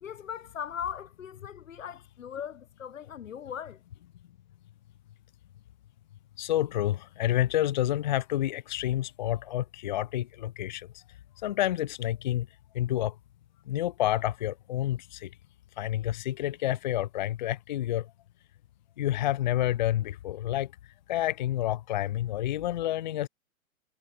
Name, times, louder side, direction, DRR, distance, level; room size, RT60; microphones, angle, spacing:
voice 1, 0.0-3.8, left 8 dB, 65° left, 0.7 m, -39 dB
voice 2, 6.4-10.9 11.4-12.5 12.7-13.1 13.7-15.3 15.8-18.1 19.0-20.7 21.1-23.3, left 13 dB, 35° left, 0.6 m, -29 dB
figure-of-eight pair, 120°, 42 cm